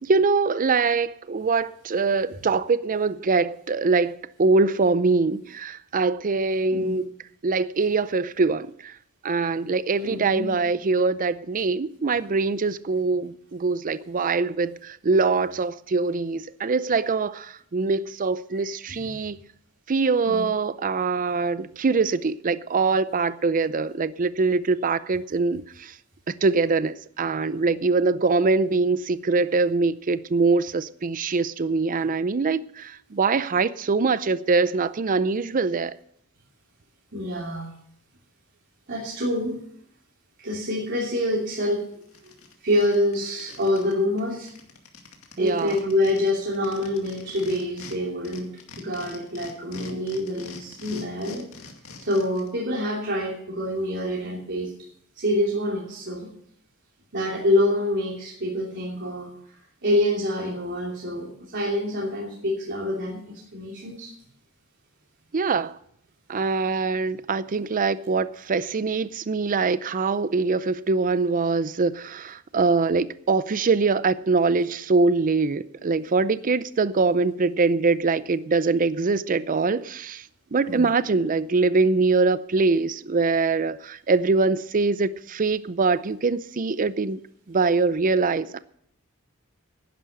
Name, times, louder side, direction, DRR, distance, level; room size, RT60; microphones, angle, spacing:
voice 1, 0.0-7.1 7.4-8.9 9.2-19.4 19.9-25.9 26.4-36.0 45.4-45.8 65.3-65.7 66.3-80.2 80.5-87.2 87.5-88.6, right 4 dB, 40° right, 0.5 m, -23 dB
voice 2, 10.1-10.5 18.5-18.9 20.2-20.4 37.1-37.7 38.9-39.6 40.4-41.8 42.2-42.3 42.6-44.5 45.4-48.5 48.8-51.5 52.0-54.7 55.1-56.3 57.1-59.3 59.8-64.1 80.7-80.9, left 1 dB, 55° right, 3.0 m, -26 dB
sound 1, 41.6-41.7 42.0-43.9 44.2-44.3 44.5-48.0 48.2-52.5, left 4 dB, 70° left, 2.2 m, -44 dB
11.0 x 10.5 x 6.5 m
head